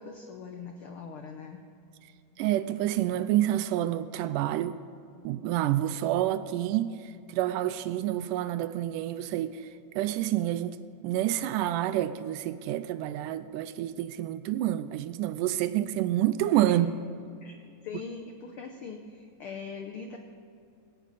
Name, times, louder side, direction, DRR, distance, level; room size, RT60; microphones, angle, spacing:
voice 1, 0.0-1.7 17.4-17.6 17.8-20.2, left 5 dB, 75° left, 1.2 m, -41 dB
voice 2, 2.4-4.8 5.2-9.6 10.0-10.8 11.0-16.9, right 13 dB, 85° right, 2.2 m, -28 dB
18.0 x 17.0 x 4.1 m
omnidirectional pair, 3.7 m